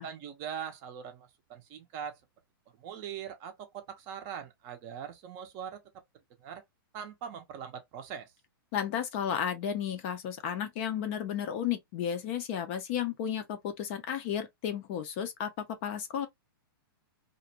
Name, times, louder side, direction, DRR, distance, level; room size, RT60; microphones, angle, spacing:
voice 1, 0.0-2.2 2.8-5.8 6.4-6.6 6.9-8.3, right 8 dB, 25° right, 0.5 m, -41 dB
voice 2, 8.7-16.3, left 9 dB, 30° left, 0.4 m, -33 dB
2.4 x 2.1 x 2.7 m
hypercardioid pair, 160°, 12 cm